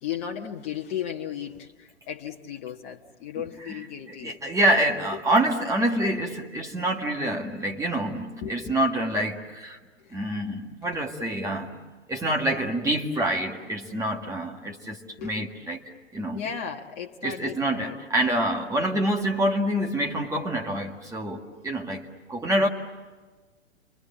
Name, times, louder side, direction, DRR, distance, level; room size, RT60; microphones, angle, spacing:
voice 1, 0.0-4.4 5.1-5.2 8.4-8.8 10.0-10.1 15.2-15.3 16.3-18.0, left 9 dB, 35° left, 2 dB, 1.5 m, -35 dB
voice 2, 3.4-9.8 10.1-11.8 12.1-15.8 16.1-16.4 17.2-22.7, right 1 dB, 10° right, 1 dB, 1.8 m, -27 dB
30.0 x 24.0 x 7.5 m, 1.3 s
figure-of-eight pair, 110°, 36 cm